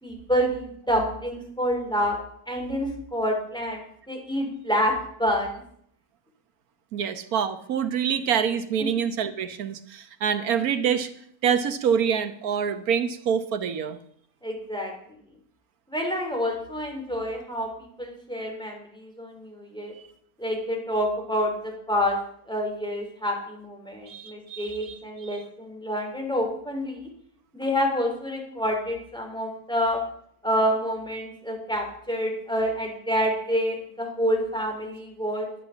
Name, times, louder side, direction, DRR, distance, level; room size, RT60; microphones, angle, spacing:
voice 1, 0.0-2.2 2.5-4.9 5.2-5.6 8.8-8.9 14.4-14.9 15.9-19.9 20.4-22.2 22.5-27.1 27.5-30.0 30.4-35.6, equal, 5° left, 1 dB, 3.1 m, -28 dB
voice 2, 6.9-11.1 11.4-14.0 24.1-25.4, right 7 dB, 70° right, 10 dB, 1.4 m, -26 dB
11.0 x 10.0 x 6.9 m, 0.67 s
omnidirectional pair, 1.7 m